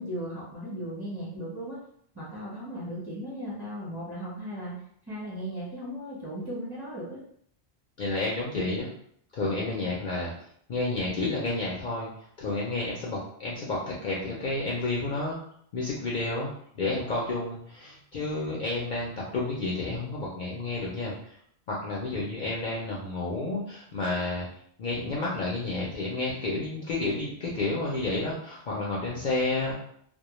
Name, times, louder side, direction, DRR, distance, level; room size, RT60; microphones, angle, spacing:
voice 1, 0.0-1.8 2.1-4.8 5.1-7.2, equal, 25° right, -7 dB, 0.8 m, -36 dB
voice 2, 8.0-8.9 9.3-10.3 10.7-12.1 12.4-15.4 15.7-21.4 21.7-24.5 24.8-29.7, left 2 dB, 60° left, -4 dB, 0.6 m, -30 dB
2.2 x 2.0 x 2.9 m, 0.66 s
omnidirectional pair, 1.1 m